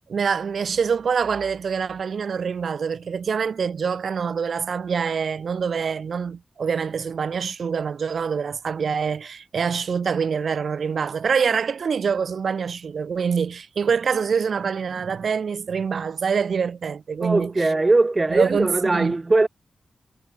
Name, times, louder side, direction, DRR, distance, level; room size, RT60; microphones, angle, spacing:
voice 1, 0.1-17.7 18.3-19.2, right 6 dB, 70° right, 4.2 m, -25 dB
voice 2, 17.2-19.5, right 2 dB, 30° right, 1.4 m, -20 dB
cardioid pair, 80°, 0 cm